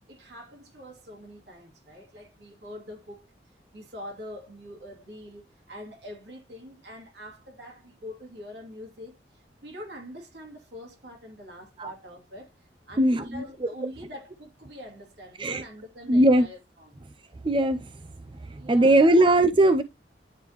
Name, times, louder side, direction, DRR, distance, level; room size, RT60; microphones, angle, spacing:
voice 1, 0.1-3.3 3.7-12.5 12.9-17.0 18.5-19.0, equal, 70° right, 2.6 m, -44 dB
voice 2, 13.0-13.7 15.4-15.6 16.1-16.5 17.4-17.9 18.5-19.8, right 1 dB, 30° right, 0.4 m, -20 dB
10.0 x 3.6 x 3.0 m
head